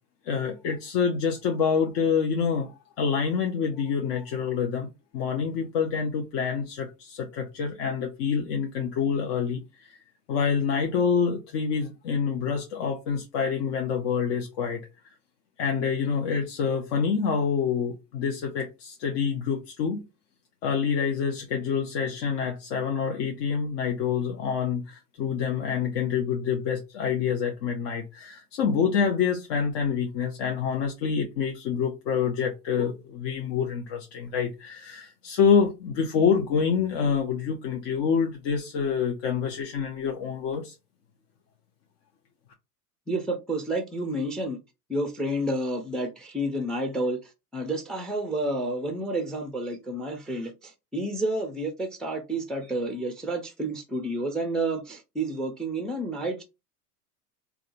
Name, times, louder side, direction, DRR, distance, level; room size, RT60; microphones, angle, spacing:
voice 1, 0.2-2.7 3.0-4.9 5.1-10.0 10.3-14.8 15.6-20.0 20.6-40.7, left 6 dB, 50° left, 0.8 m, -27 dB
voice 2, 43.1-44.6 44.9-47.2 47.5-56.4, right 1 dB, ahead, 0.4 m, -30 dB
3.6 x 2.3 x 2.5 m
hypercardioid pair, 95°, 46 cm